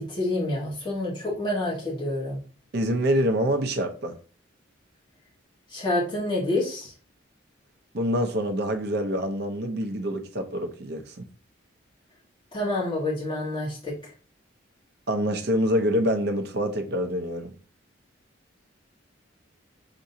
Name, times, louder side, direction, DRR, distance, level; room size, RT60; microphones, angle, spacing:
voice 1, 0.0-2.4 5.7-6.9 12.5-13.9, left 1 dB, 25° left, 1.3 m, -28 dB
voice 2, 2.7-4.1 7.9-11.2 15.1-17.5, equal, 55° right, 0.6 m, -26 dB
5.9 x 2.6 x 2.7 m
head